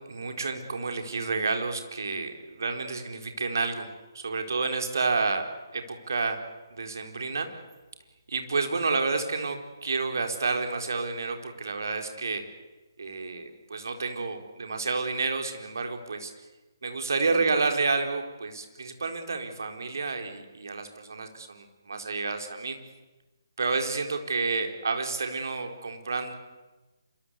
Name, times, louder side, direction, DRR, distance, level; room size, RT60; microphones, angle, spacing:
voice 1, 0.1-3.9 4.1-6.4 6.7-7.5 8.3-12.4 13.0-16.3 16.8-22.8 23.6-26.3, right 4 dB, 55° right, 5 dB, 4.1 m, -30 dB
26.5 x 25.0 x 8.4 m, 1.1 s
figure-of-eight pair, 140°, 2 cm